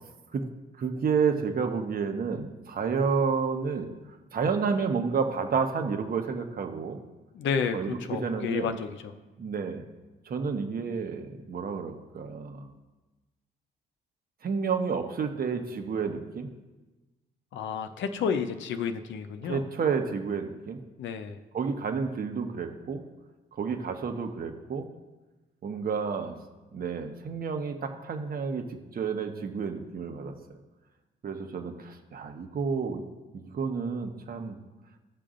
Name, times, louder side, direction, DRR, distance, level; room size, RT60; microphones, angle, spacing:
voice 1, 0.8-3.9 4.3-7.0 7.7-8.7 9.4-9.8 10.2-12.7 14.4-16.5 19.4-20.8 21.5-23.0 23.6-24.9 25.6-26.4 26.7-30.3 31.2-33.1 33.3-34.6, right 5 dB, 50° right, 6 dB, 1.0 m, -30 dB
voice 2, 7.3-9.2 17.5-19.6 21.0-21.4, left 6 dB, 70° left, 8 dB, 0.7 m, -31 dB
15.5 x 6.8 x 2.5 m, 1.2 s
cardioid pair, 90°, 20 cm